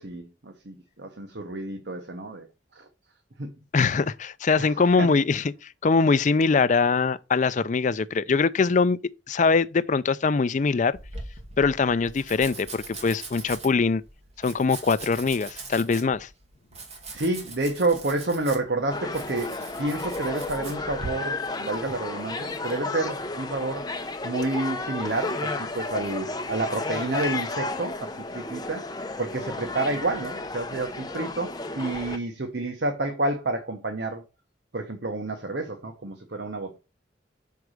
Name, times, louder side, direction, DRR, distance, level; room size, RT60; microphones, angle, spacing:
voice 1, 0.0-2.5 2.8-2.9 3.4-3.5 4.6-4.7 5.0-5.1 17.1-23.9 24.2-28.8 29.2-34.2 34.7-36.8, right 2 dB, 60° right, 1.1 m, -29 dB
voice 2, 3.7-9.0 9.3-11.0 11.6-14.0 14.4-16.3, left 4 dB, 40° left, 0.4 m, -22 dB
Domestic sounds home sounds, 10.9-21.1, right 3 dB, 35° right, 2.0 m, -41 dB
sound 1, 18.9-32.2, left 3 dB, 20° left, 0.8 m, -33 dB
6.0 x 4.7 x 6.4 m
head